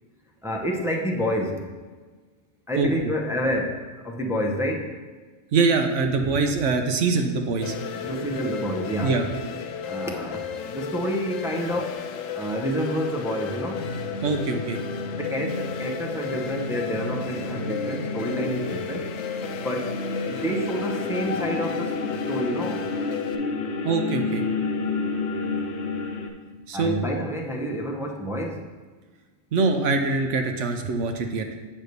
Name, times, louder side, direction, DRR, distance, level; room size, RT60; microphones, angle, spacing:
voice 1, 0.4-1.7 2.7-4.9 8.0-9.2 9.8-12.0 12.3-13.9 15.2-19.1 19.6-20.0 20.2-22.9 26.7-28.6, equal, 5° right, 0 dB, 0.4 m, -28 dB
voice 2, 5.5-7.8 9.0-9.3 14.2-14.8 23.8-24.4 26.7-27.0 29.5-31.5, right 4 dB, 70° right, 5 dB, 1.0 m, -23 dB
sound 1, 7.6-23.4, left 7 dB, 90° left, 1.0 m, -34 dB
sound 2, 13.8-26.3, left 3 dB, 65° left, 0.9 m, -31 dB
8.2 x 3.3 x 6.5 m, 1.4 s
omnidirectional pair, 1.3 m